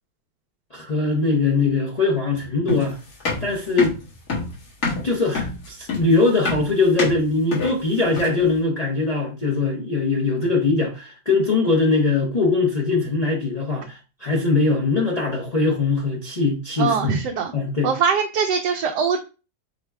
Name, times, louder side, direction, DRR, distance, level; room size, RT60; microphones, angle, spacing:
voice 1, 0.7-3.0 3.4-3.9 5.0-17.2 17.5-17.9, left 3 dB, 35° left, 0.6 m, -21 dB
sound 1, 2.7-8.5, left 3 dB, 60° left, 2.0 m, -27 dB
voice 2, 16.8-17.5 17.8-19.2, right 6 dB, 85° right, 1.2 m, -22 dB
4.7 x 2.2 x 4.6 m
omnidirectional pair, 1.8 m